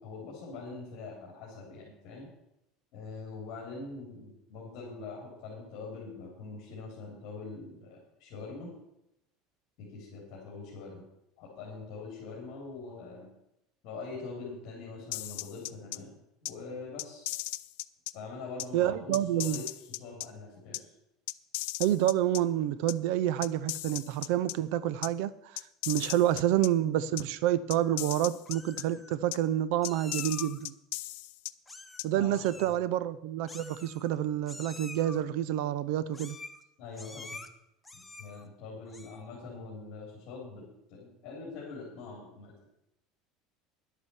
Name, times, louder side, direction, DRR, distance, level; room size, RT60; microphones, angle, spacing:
voice 1, 0.0-2.3 2.9-8.7 9.8-11.0 11.4-13.3 13.8-16.1 16.4-17.3 18.1-20.9 32.1-32.8 36.8-37.4 38.0-40.6 40.9-42.5, left 3 dB, 45° left, -2 dB, 3.5 m, -43 dB
sound 1, 15.1-16.0 16.4-16.5 17.0-18.1 18.6-18.7 19.1-20.3 20.7-20.8 21.3-22.4 22.9-23.0 23.4-24.5 25.0-25.1 25.6-26.7 27.2-27.3 27.7-28.8 29.3-29.4 29.8-31.5 32.0-32.1, left 20 dB, 75° left, 0.4 m, -36 dB
voice 2, 18.7-19.6 21.8-25.3 25.9-30.7 32.0-36.4, right 12 dB, 60° right, 17 dB, 0.5 m, -28 dB
Meow, 27.7-28.1 28.5-29.2 29.8-30.6 31.7-32.1 32.3-32.8 33.5-34.2 34.5-35.2 36.1-36.6 36.9-37.5 37.8-38.4 38.9-39.3, left 3 dB, 5° left, 0.7 m, -47 dB
10.5 x 8.3 x 7.1 m, 0.84 s
cardioid pair, 175°, 0 cm